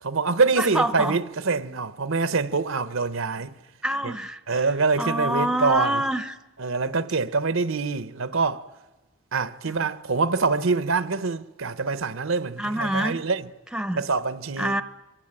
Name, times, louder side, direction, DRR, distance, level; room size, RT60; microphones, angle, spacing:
voice 1, 0.0-3.5 4.0-4.1 4.5-6.0 6.6-8.7 9.3-13.5 13.9-14.7, right 4 dB, 70° right, 0.9 m, -25 dB
voice 2, 0.6-1.2 3.8-4.7 5.0-6.4 9.7-9.8 12.6-13.3 13.7-14.0 14.6-14.8, right 1 dB, 5° right, 0.8 m, -26 dB
26.5 x 23.5 x 9.0 m
head